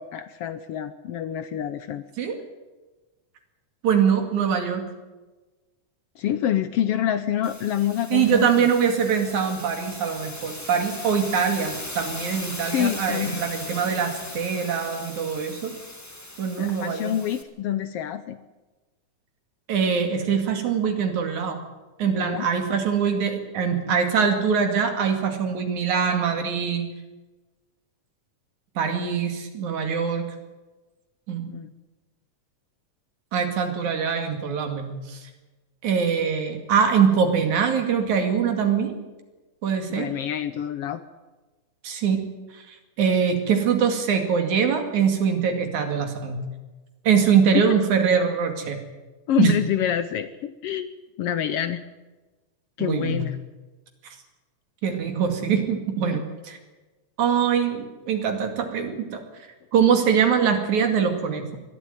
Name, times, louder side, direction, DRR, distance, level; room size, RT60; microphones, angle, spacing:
voice 1, 0.0-2.0 6.2-8.7 12.7-13.5 16.6-18.4 22.0-22.5 31.5-31.7 39.9-41.0 47.5-47.8 49.3-50.9 51.2-51.8 52.8-53.4 56.0-56.2, left 10 dB, 70° left, 12 dB, 1.5 m, -27 dB
voice 2, 3.8-4.8 8.1-15.7 16.4-17.1 19.7-21.6 22.0-26.8 28.8-30.3 31.3-31.5 33.3-35.2 35.8-38.9 39.6-40.1 41.8-42.2 42.5-42.7 43.0-46.4 47.1-48.8 49.4-49.5 52.8-53.2 54.0-54.2 54.8-56.6 57.2-59.2 59.7-61.6, right 7 dB, 80° right, 5 dB, 3.8 m, -23 dB
sound 1, 7.4-17.4, left 1 dB, 10° left, 1.1 m, -38 dB
21.0 x 13.0 x 9.3 m, 1.2 s
omnidirectional pair, 3.3 m